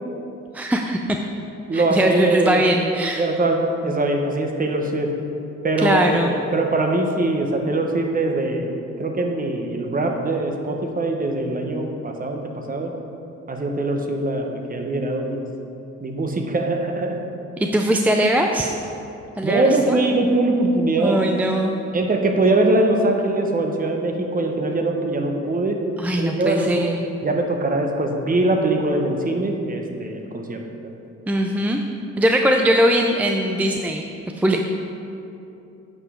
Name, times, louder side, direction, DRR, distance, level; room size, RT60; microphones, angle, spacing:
voice 1, 0.5-1.0 1.7-3.3 5.8-6.3 17.6-18.7 19.4-20.0 21.0-21.8 26.0-27.0 31.3-31.8 32.2-34.0 34.4-34.6, equal, 5° right, 2 dB, 0.4 m, -20 dB
voice 2, 1.7-2.7 3.2-3.6 3.8-5.1 5.6-8.7 9.0-12.9 13.5-15.4 16.0-17.2 19.4-21.2 21.9-25.8 26.2-26.7 27.2-30.6, right 2 dB, 30° right, 3 dB, 1.0 m, -22 dB
8.6 x 5.0 x 5.0 m, 2.8 s
cardioid pair, 90°, 30 cm